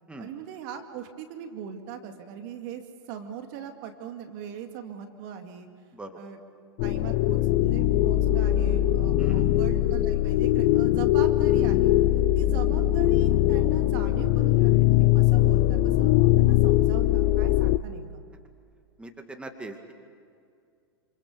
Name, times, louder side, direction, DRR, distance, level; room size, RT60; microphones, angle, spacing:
voice 1, 0.2-2.8 3.1-5.7 6.2-6.4 6.8-11.9 12.3-18.2, right 8 dB, 50° right, 5 dB, 2.4 m, -40 dB
sound 1, 6.8-17.8, left 14 dB, 50° left, 0.8 m, -21 dB
voice 2, 9.2-9.5 19.0-19.9, right 2 dB, 10° right, 5 dB, 2.2 m, -41 dB
27.0 x 27.0 x 6.9 m, 2.3 s
hypercardioid pair, 105°, 14 cm